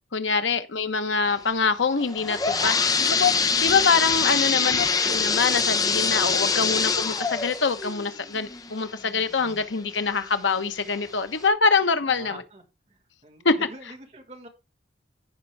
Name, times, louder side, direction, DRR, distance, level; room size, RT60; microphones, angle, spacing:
voice 1, 0.1-2.7 3.0-12.4 13.4-13.6, left 5 dB, 85° left, 1.0 m, -24 dB
sound 1, 2.0-9.6 10.1-10.2 10.9-11.0 11.4-11.5, left 5 dB, 20° left, 0.7 m, -24 dB
voice 2, 2.5-2.9 4.5-4.9 12.0-14.5, right 2 dB, 35° right, 2.0 m, -45 dB
14.5 x 5.3 x 3.4 m
head